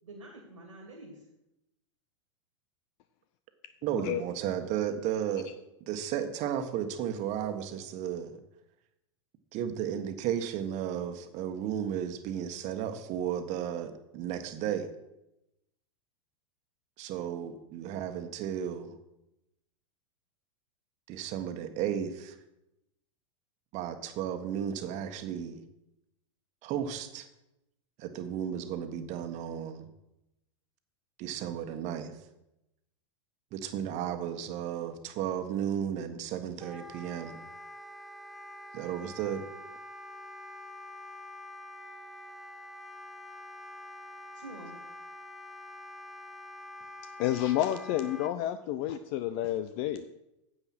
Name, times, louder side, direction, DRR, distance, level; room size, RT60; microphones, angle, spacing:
voice 1, 0.0-1.3 3.9-4.2 4.8-5.0 44.3-44.8, right 2 dB, 90° right, -1 dB, 2.5 m, -47 dB
voice 2, 3.8-5.5 5.9-8.4 9.5-14.9 17.0-18.9 21.1-22.3 23.7-25.6 26.6-27.3 28.0-29.9 31.2-32.2 33.5-37.4 38.7-39.4, right 9 dB, 45° right, 8 dB, 1.4 m, -34 dB
Wind instrument woodwind instrument, 36.6-48.3, left 1 dB, ahead, 0.8 m, -46 dB
voice 3, 47.2-50.1, left 12 dB, 50° left, 11 dB, 0.6 m, -30 dB
9.4 x 8.1 x 6.0 m, 0.89 s
hypercardioid pair, 105°, 17 cm